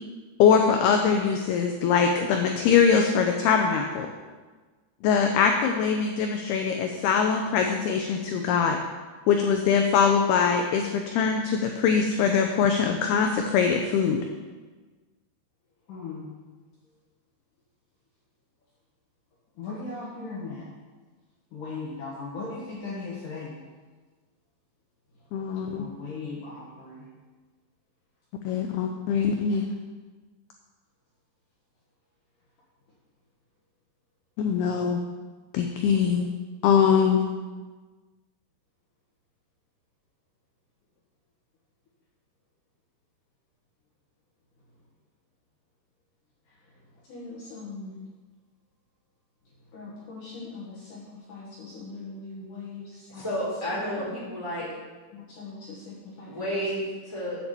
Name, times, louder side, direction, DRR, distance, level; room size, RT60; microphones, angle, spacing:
voice 1, 0.4-4.1 5.0-8.8 9.3-14.2 25.3-25.8 28.4-29.6 34.4-35.0 35.5-36.3 36.6-37.2, left 6 dB, 80° left, 4 dB, 2.3 m, -22 dB
voice 2, 15.9-16.3 19.6-20.7 21.5-23.6 25.7-27.1 28.9-29.0 47.1-48.0 49.7-53.3 53.8-54.2 54.6-54.7 55.1-56.7, left 3 dB, 60° left, -5 dB, 2.4 m, -39 dB
voice 3, 53.1-54.7 56.3-57.4, equal, 5° right, -6 dB, 2.3 m, -31 dB
8.3 x 7.1 x 7.5 m, 1.3 s
omnidirectional pair, 5.3 m